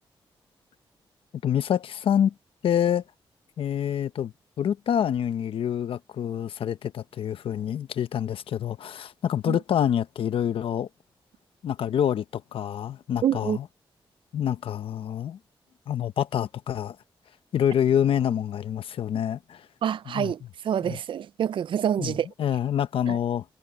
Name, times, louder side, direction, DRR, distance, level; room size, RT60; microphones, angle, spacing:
voice 1, 1.4-2.3 2.6-3.0 3.6-10.9 11.6-13.6 14.3-15.4 15.9-17.0 17.5-19.7 20.1-20.3 20.8-21.0 22.0-22.1 22.4-23.4, left 9 dB, 75° left, 0.9 m, -26 dB
voice 2, 13.2-13.6 19.8-22.3 23.1-23.2, right 9 dB, 65° right, 0.4 m, -27 dB
wide cardioid pair, 135°, 9 cm